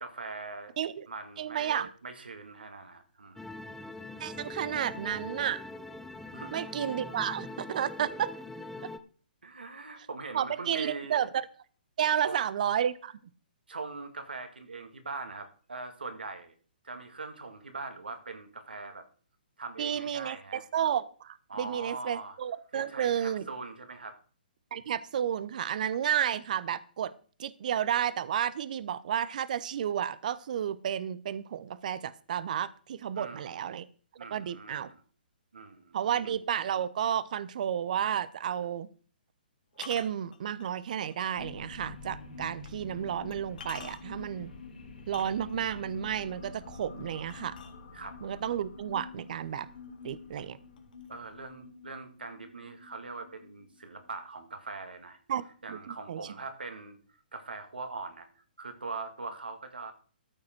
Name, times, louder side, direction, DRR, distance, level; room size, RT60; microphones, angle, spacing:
voice 1, 0.0-0.7 1.1-3.5 6.3-6.8 9.4-11.3 12.2-12.4 13.7-16.5 16.8-19.0 19.6-20.7 21.5-22.4 22.7-24.2 33.1-33.6 34.2-35.0 35.5-36.2 47.9-48.2 51.1-55.2 55.6-57.0 57.3-59.9, right 3 dB, 80° right, 6 dB, 2.1 m, -42 dB
voice 2, 1.4-1.9 4.2-5.6 6.5-8.3 10.3-11.4 12.0-13.1 19.8-23.4 24.7-27.1 27.4-33.8 34.3-34.9 35.9-38.9 39.8-44.5 45.1-47.6 48.2-49.7 50.0-50.6 55.3-56.2, right 9 dB, 55° right, 17 dB, 0.7 m, -32 dB
sound 1, 3.4-9.0, left 2 dB, 5° left, 0.7 m, -42 dB
sound 2, 38.0-38.1 39.7-41.2 41.7-41.8 42.6-42.7 43.3-44.3 45.0-45.8 47.3-48.2 49.2-49.3 49.7-50.1 50.4-51.3, left 6 dB, 60° left, 2.0 m, -48 dB
sound 3, 41.3-54.2, left 4 dB, 75° left, 3.4 m, -47 dB
13.5 x 7.3 x 4.6 m, 0.41 s
figure-of-eight pair, 130°, 5 cm